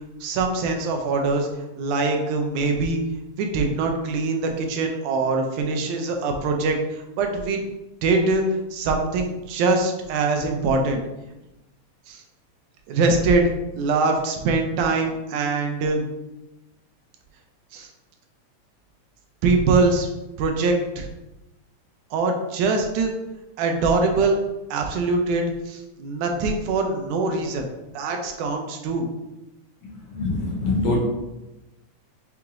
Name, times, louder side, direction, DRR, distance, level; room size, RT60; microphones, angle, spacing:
voice 1, 0.2-1.5 1.8-3.0 3.4-7.6 8.0-8.4 8.7-11.0 12.1-12.2 12.9-13.5 13.8-16.0 17.7-17.9 19.4-20.1 20.4-21.1 22.1-23.1 23.6-24.4 24.7-27.7 27.9-29.1, right 3 dB, 80° right, 3 dB, 1.9 m, -23 dB
voice 2, 29.8-31.0, left 2 dB, 75° left, -2 dB, 1.7 m, -24 dB
5.9 x 2.9 x 2.4 m, 0.99 s
omnidirectional pair, 3.6 m